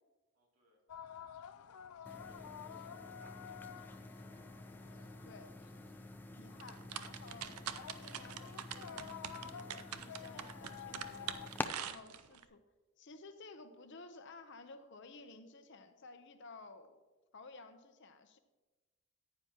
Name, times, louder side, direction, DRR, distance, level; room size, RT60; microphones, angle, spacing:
voice 1, 0.3-0.8 2.2-4.6, equal, 65° right, -2 dB, 2.8 m, -68 dB
sound 1, 0.9-11.5, left 8 dB, 80° left, 0.4 m, -52 dB
sound 2, 2.1-11.7, left 2 dB, 10° left, 0.4 m, -49 dB
voice 2, 6.3-11.3 11.8-12.6 13.0-17.0 17.3-18.4, left 3 dB, 55° left, 9 dB, 0.8 m, -54 dB
sound 3, 6.6-12.4, right 10 dB, 85° right, 0.5 m, -44 dB
14.5 x 9.4 x 2.9 m, 1.2 s
head